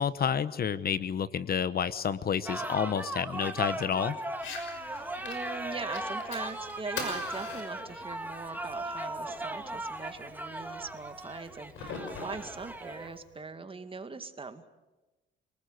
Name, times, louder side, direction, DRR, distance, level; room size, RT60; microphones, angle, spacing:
voice 1, 0.0-4.2, left 7 dB, 50° left, 15 dB, 1.0 m, -29 dB
sound 1, 2.5-13.1, right 1 dB, 10° right, 2.6 m, -38 dB
Fire, 4.3-13.3, left 5 dB, 80° left, 5.9 m, -44 dB
voice 2, 4.9-14.6, right 4 dB, 25° right, 8 dB, 2.1 m, -41 dB
27.5 x 19.5 x 8.1 m, 1.1 s
cardioid pair, 90°, 20 cm